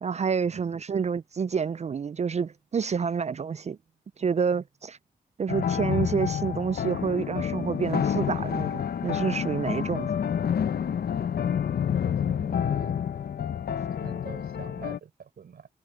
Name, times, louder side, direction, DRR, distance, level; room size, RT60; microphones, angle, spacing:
voice 1, 0.0-3.8 4.2-5.0 5.4-10.1, right 6 dB, 45° right, 0.4 m, -28 dB
sound 1, 5.5-15.0, left 8 dB, 80° left, 0.8 m, -28 dB
voice 2, 12.0-12.9 13.9-15.7, right 7 dB, 85° right, 6.5 m, -46 dB
cardioid pair, 50°, 16 cm